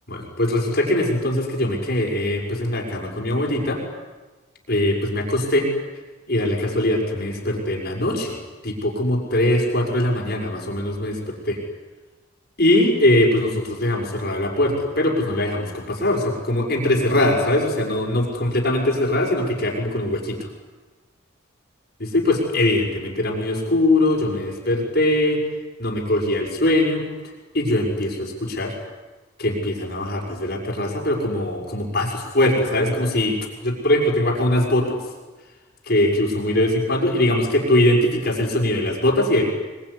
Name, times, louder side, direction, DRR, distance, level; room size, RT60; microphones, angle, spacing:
voice 1, 0.1-3.8 4.7-5.7 6.3-8.4 8.6-11.2 11.4-11.6 12.6-20.4 22.0-25.4 25.8-27.0 27.5-28.7 29.4-33.4 33.6-35.0 35.9-39.4, left 1 dB, 50° left, 0 dB, 6.0 m, -21 dB
25.0 x 23.5 x 10.0 m, 1.2 s
head